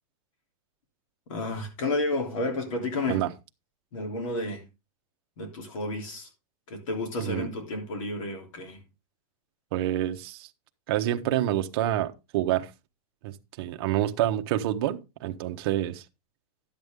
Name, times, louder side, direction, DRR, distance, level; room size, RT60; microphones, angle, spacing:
voice 1, 1.3-3.3 3.9-4.7 5.4-6.3 6.7-8.8, left 2 dB, 60° left, 3.2 m, -31 dB
voice 2, 9.7-10.5 10.9-12.7 13.2-16.0, right 13 dB, 40° right, 0.9 m, -27 dB
12.0 x 8.0 x 3.6 m
supercardioid pair, 175°, 19 cm